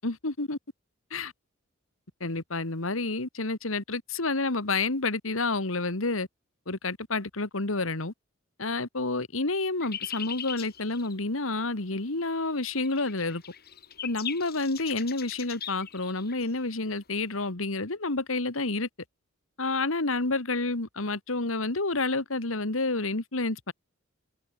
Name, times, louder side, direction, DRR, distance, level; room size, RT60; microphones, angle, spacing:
voice 1, 0.0-0.6 1.1-1.3 2.2-6.3 6.7-8.1 8.6-13.4 14.0-18.9 19.6-23.7, left 3 dB, 80° left, 2.2 m, -29 dB
sound 1, 9.8-17.5, left 9 dB, 50° left, 3.9 m, -41 dB
open air
head